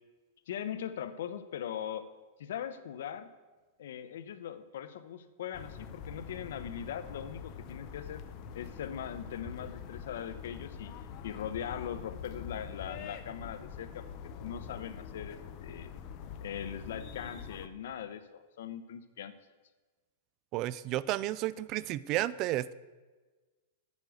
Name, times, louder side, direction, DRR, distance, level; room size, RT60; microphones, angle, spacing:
voice 1, 0.5-2.1 2.4-3.3 3.8-8.2 8.5-10.9 11.2-14.1 14.4-15.9 16.4-19.3, left 9 dB, 70° left, 11 dB, 0.8 m, -40 dB
sound 1, 5.5-17.7, left 7 dB, 35° left, 0.7 m, -45 dB
voice 2, 20.5-22.7, right 15 dB, 30° right, 19 dB, 0.3 m, -32 dB
8.2 x 6.4 x 8.2 m, 1.3 s
supercardioid pair, 160°, 0 cm